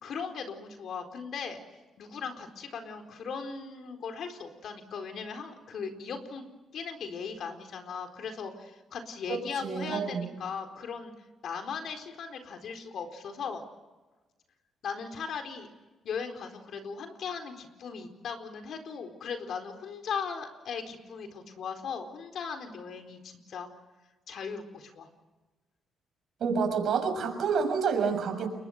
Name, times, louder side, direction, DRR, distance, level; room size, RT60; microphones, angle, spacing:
voice 1, 0.0-1.6 2.0-6.4 6.7-11.1 11.4-13.6 14.8-15.7 16.0-23.7 24.3-25.1, left 6 dB, 65° left, 6 dB, 4.3 m, -38 dB
voice 2, 9.3-10.2 26.4-28.5, right 5 dB, 65° right, 5 dB, 6.6 m, -28 dB
29.5 x 23.0 x 6.6 m, 1.2 s
cardioid pair, 90°, 0 cm